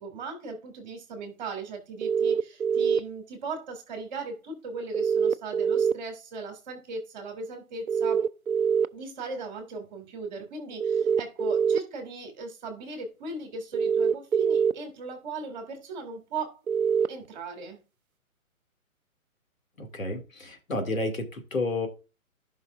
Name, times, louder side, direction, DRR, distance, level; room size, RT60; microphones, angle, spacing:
voice 1, 0.0-8.3 8.9-16.6 17.1-17.8, right 3 dB, 30° right, 5 dB, 2.4 m, -38 dB
sound 1, 2.0-3.0 4.9-5.9 7.9-8.9 10.8-11.8 13.7-14.7 16.7-17.1, right 7 dB, 75° right, 0.7 m, -24 dB
voice 2, 19.8-21.9, left 2 dB, 70° left, 5 dB, 2.6 m, -31 dB
14.0 x 5.6 x 2.5 m, 0.31 s
figure-of-eight pair, 135°, 43 cm